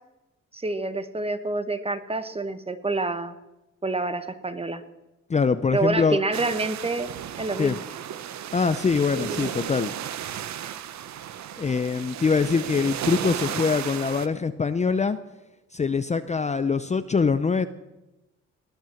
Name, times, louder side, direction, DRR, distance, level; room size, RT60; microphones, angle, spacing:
voice 1, 0.5-3.4 3.8-4.8 5.7-7.8 9.2-9.5, right 2 dB, 20° right, 11 dB, 1.2 m, -28 dB
voice 2, 5.3-6.2 7.6-7.8 8.5-9.9 11.6-15.2 15.7-17.7, left 5 dB, 25° left, 11 dB, 0.6 m, -23 dB
sound 1, 6.3-14.3, right 10 dB, 65° right, 0.9 m, -34 dB
18.5 x 10.5 x 7.2 m, 1.0 s
cardioid pair, 90°, 30 cm